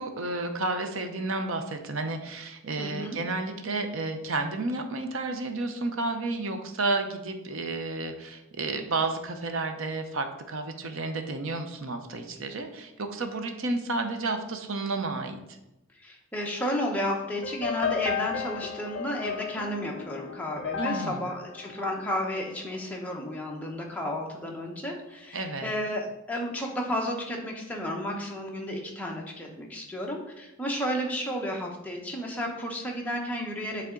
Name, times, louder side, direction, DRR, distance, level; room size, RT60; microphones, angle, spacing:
voice 1, 0.0-15.6 20.8-21.3 25.3-25.7, right 3 dB, 60° right, 6 dB, 0.7 m, -31 dB
voice 2, 2.8-3.2 8.7-8.9 15.9-33.9, equal, 5° left, -1 dB, 0.9 m, -32 dB
sound 1, 17.4-22.7, left 8 dB, 55° left, 0.4 m, -34 dB
8.2 x 3.5 x 3.8 m, 0.93 s
head